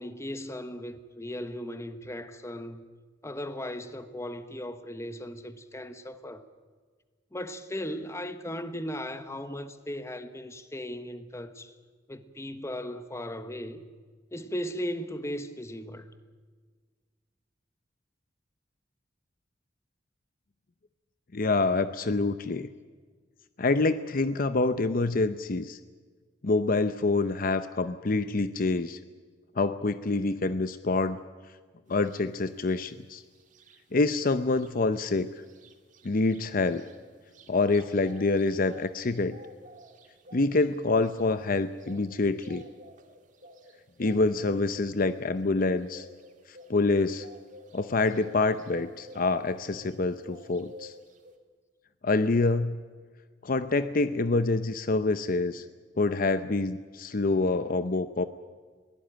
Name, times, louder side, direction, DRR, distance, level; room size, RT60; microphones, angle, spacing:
voice 1, 0.0-2.8 3.2-6.5 7.3-11.7 12.1-13.9 14.3-16.2, equal, 15° left, 1.2 m, -37 dB
voice 2, 21.3-22.7 23.6-25.8 26.4-29.0 29.6-31.2 31.9-33.2 33.9-35.3 36.0-36.8 37.5-39.4 40.3-42.6 44.0-46.1 46.5-47.3 47.7-50.9 52.0-52.8 53.4-55.6 56.0-58.3, left 3 dB, 50° left, 0.7 m, -26 dB
sound 1, 32.0-32.2 32.6-34.2 34.5-34.7 34.9-50.0 50.2-51.3, equal, 45° right, 1.9 m, -51 dB
22.0 x 17.5 x 9.0 m
head